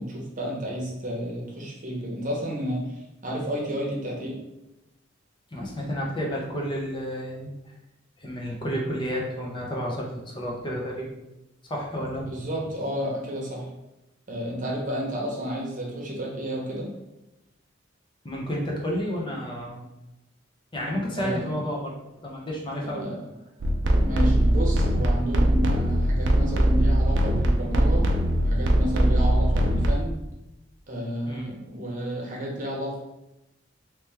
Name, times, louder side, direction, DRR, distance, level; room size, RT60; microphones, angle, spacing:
voice 1, 0.0-4.4 12.2-13.7 14.3-16.9 21.2-21.5 22.8-23.2 23.9-28.1 28.4-30.2 30.9-33.0, equal, 45° right, -2 dB, 0.9 m, -31 dB
voice 2, 5.5-7.7 8.2-11.1 11.7-12.3 18.2-19.8 20.7-22.0 22.2-23.1 31.3-31.5, equal, 25° left, -2 dB, 0.8 m, -31 dB
sound 1, 23.6-30.0, right 1 dB, 65° right, 0.5 m, -21 dB
3.2 x 3.0 x 3.4 m, 0.94 s
head